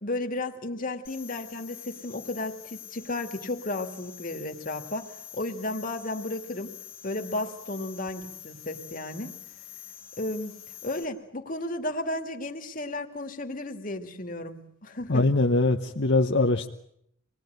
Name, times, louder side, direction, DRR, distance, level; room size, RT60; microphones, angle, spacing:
voice 1, 0.0-6.7 7.0-9.4 10.2-10.6 10.8-15.2, left 2 dB, 40° left, 6 dB, 2.2 m, -33 dB
sound 1, 1.1-11.1, left 12 dB, 75° left, 1.8 m, -46 dB
voice 2, 15.1-16.7, left 2 dB, 55° left, 3 dB, 1.0 m, -22 dB
26.0 x 20.0 x 9.3 m, 0.74 s
head